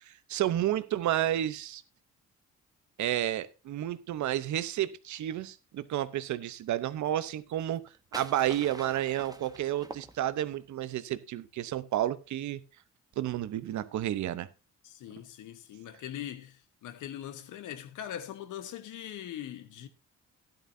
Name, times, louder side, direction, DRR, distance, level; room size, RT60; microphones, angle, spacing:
voice 1, 0.0-1.8 3.0-7.9 8.1-12.6 13.2-14.5, right 12 dB, 70° right, 0.8 m, -31 dB
sound 1, 7.6-10.6, right 2 dB, 10° right, 1.0 m, -46 dB
voice 2, 14.8-19.9, left 11 dB, 85° left, 1.2 m, -41 dB
13.0 x 11.0 x 2.7 m
cardioid pair, 90°, 30 cm